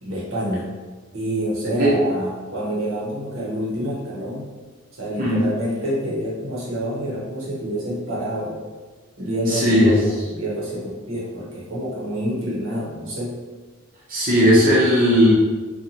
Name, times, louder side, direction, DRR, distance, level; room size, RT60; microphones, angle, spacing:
voice 1, 0.0-0.7 1.1-4.5 4.9-8.6 9.2-9.9 10.3-13.3, equal, 70° right, -5 dB, 0.8 m, -27 dB
voice 2, 9.5-10.0 14.1-15.3, equal, 40° right, -8 dB, 0.6 m, -16 dB
2.7 x 2.2 x 2.8 m, 1.3 s
head